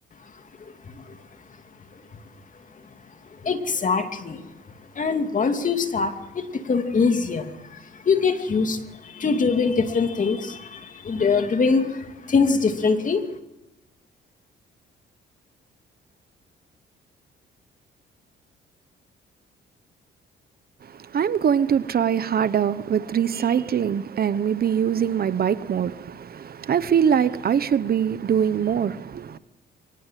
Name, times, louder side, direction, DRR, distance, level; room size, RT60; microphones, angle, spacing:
voice 1, 0.9-1.2 3.4-4.4 5.0-13.3, left 5 dB, 40° left, 2.7 m, -23 dB
voice 2, 20.8-29.4, right 8 dB, 50° right, 1.1 m, -23 dB
23.5 x 19.0 x 7.6 m
cardioid pair, 90°, 20 cm